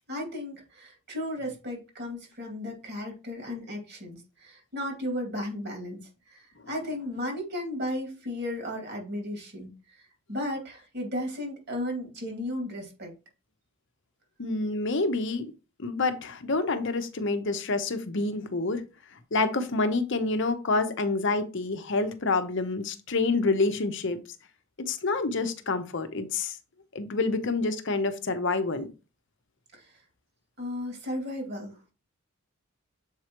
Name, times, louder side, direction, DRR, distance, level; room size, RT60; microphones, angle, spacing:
voice 1, 0.1-13.1 29.7-29.9 30.6-31.8, left 1 dB, 45° right, 2.3 m, -35 dB
voice 2, 14.4-15.5 15.8-18.8 19.3-24.2 24.9-26.6 26.9-28.9, left 3 dB, 55° left, 0.8 m, -27 dB
7.3 x 4.6 x 3.0 m
head